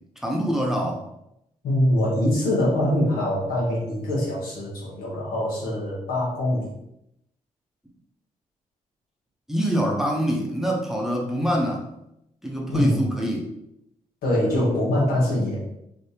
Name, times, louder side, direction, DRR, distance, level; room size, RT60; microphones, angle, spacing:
voice 1, 0.2-1.0 9.5-11.8 12.4-13.5, equal, 5° right, -2 dB, 0.7 m, -25 dB
voice 2, 1.6-6.7 12.7-13.0 14.2-15.7, left 1 dB, 90° left, -5 dB, 1.3 m, -23 dB
3.4 x 2.7 x 2.8 m, 0.82 s
cardioid pair, 70°, 15 cm